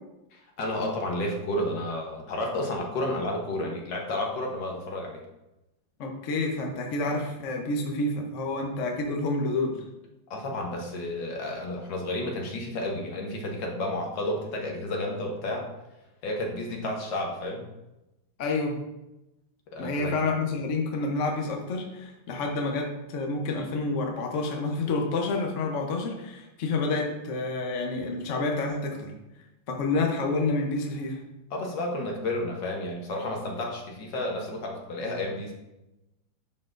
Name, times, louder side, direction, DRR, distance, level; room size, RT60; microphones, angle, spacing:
voice 1, 0.3-5.2 10.3-15.7 16.2-17.7 19.7-20.2 31.5-35.5, left 1 dB, 70° left, 0 dB, 1.7 m, -31 dB
voice 2, 6.0-9.8 18.4-18.8 19.8-29.1 29.7-31.2, left 3 dB, 50° left, 1 dB, 0.9 m, -29 dB
11.0 x 4.3 x 2.5 m, 0.95 s
omnidirectional pair, 2.1 m